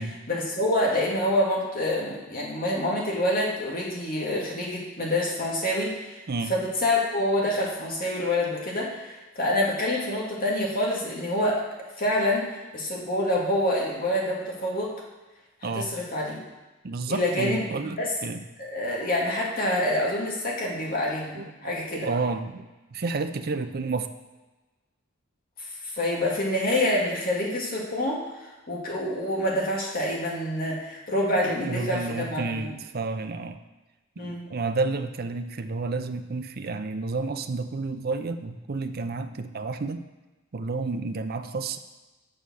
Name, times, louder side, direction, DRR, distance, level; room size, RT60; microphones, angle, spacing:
voice 1, 0.3-6.2 6.5-11.6 12.0-14.9 15.6-16.4 17.1-17.6 18.0-18.1 18.6-22.1 25.8-28.2 28.7-32.8 34.2-34.4, left 1 dB, 45° left, -3 dB, 2.2 m, -27 dB
voice 2, 16.8-18.4 21.4-24.1 31.5-33.6 34.2-40.1 40.5-41.8, right 3 dB, 45° right, 8 dB, 0.5 m, -31 dB
7.0 x 6.8 x 6.3 m, 1.2 s
head